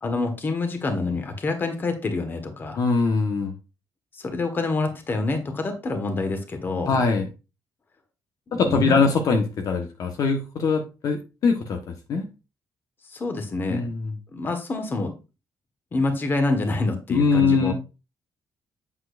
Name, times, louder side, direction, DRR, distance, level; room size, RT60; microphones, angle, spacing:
voice 1, 0.0-2.8 4.1-6.9 8.5-9.0 13.0-13.9 14.3-15.1 15.9-17.7, left 3 dB, 30° left, 6 dB, 1.6 m, -27 dB
voice 2, 2.8-3.5 6.9-7.3 8.5-12.2 13.7-14.1 17.1-17.7, left 4 dB, 55° left, 4 dB, 1.2 m, -22 dB
8.4 x 7.4 x 2.6 m, 0.30 s
cardioid pair, 150°, 7 cm